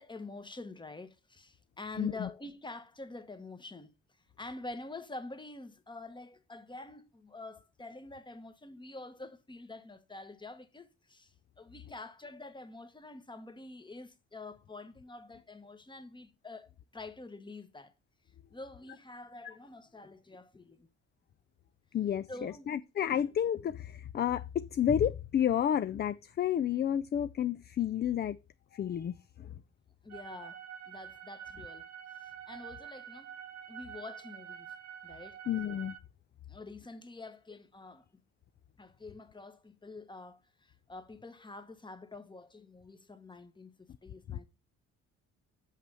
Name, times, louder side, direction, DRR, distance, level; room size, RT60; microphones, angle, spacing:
voice 1, 0.0-17.9 18.5-20.9 22.3-22.7 30.0-30.6 30.9-31.9 32.1-33.3 33.7-34.7 35.0-35.4 36.5-38.2 38.8-43.7 44.0-44.4, left 2 dB, 15° left, 1.1 m, -47 dB
voice 2, 2.0-2.3 21.9-28.4 28.7-29.5 35.5-36.0 44.3-44.4, left 9 dB, 35° left, 0.4 m, -31 dB
sound 1, 30.1-36.0, right 9 dB, 55° right, 1.0 m, -47 dB
6.3 x 5.7 x 5.5 m
cardioid pair, 90°, 30 cm